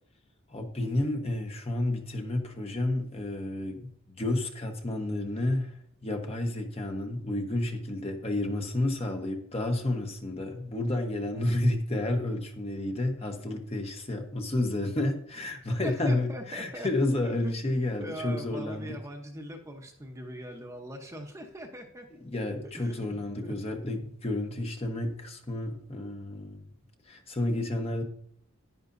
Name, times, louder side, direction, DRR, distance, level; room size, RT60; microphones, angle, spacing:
voice 1, 0.5-19.0 22.2-26.7 27.1-28.0, left 1 dB, 30° left, 1.0 m, -31 dB
voice 2, 15.8-16.9 17.2-17.6 18.0-22.2 22.6-23.6, right 1 dB, 15° right, 0.9 m, -41 dB
10.5 x 10.5 x 2.6 m
head